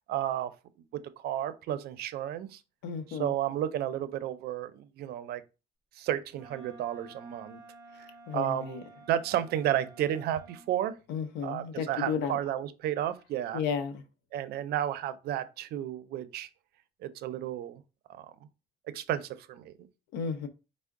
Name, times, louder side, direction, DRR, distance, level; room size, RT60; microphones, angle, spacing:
voice 1, 0.1-0.5 0.9-2.6 3.1-5.4 6.0-7.6 8.0-8.1 8.3-8.8 9.1-10.9 11.4-13.6 14.3-16.5 17.0-17.8 18.2-18.3 18.9-19.7, right 11 dB, 70° right, 0.5 m, -32 dB
voice 2, 2.8-3.3 8.3-8.8 11.1-12.4 13.5-14.0 20.1-20.5, left 6 dB, 85° left, 0.6 m, -33 dB
Wind instrument woodwind instrument, 6.3-10.7, right 2 dB, 5° right, 2.2 m, -52 dB
4.5 x 2.1 x 3.5 m
cardioid pair, 110°, 17 cm